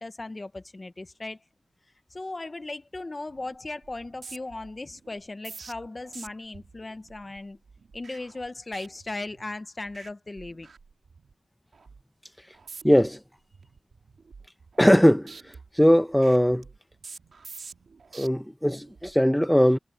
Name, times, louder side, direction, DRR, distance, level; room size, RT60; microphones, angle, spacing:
voice 1, 0.0-1.4 2.1-7.6 7.9-10.7, left 2 dB, 25° left, 0.9 m, -37 dB
sound 1, 3.3-3.6 3.8-9.6 9.9-10.1 10.4-11.3 11.7-12.0 12.5-13.1 13.5-15.0 15.3-18.3 18.8-19.1, right 5 dB, 65° right, 1.9 m, -48 dB
voice 2, 12.8-13.2 14.8-15.3 15.8-16.6 18.1-19.8, equal, 5° left, 0.7 m, -19 dB
wide cardioid pair, 125°, 0 cm